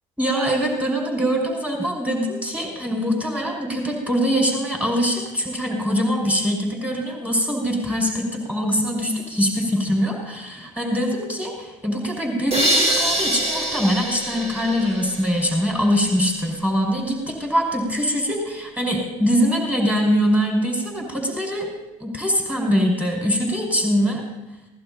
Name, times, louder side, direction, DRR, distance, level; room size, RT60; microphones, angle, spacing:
voice 1, 0.2-21.7 22.0-24.2, equal, 10° right, -1 dB, 5.1 m, -23 dB
sound 1, 12.5-15.5, right 1 dB, 40° right, 4.9 m, -24 dB
23.5 x 17.5 x 2.7 m, 1.1 s
hypercardioid pair, 70°, 17 cm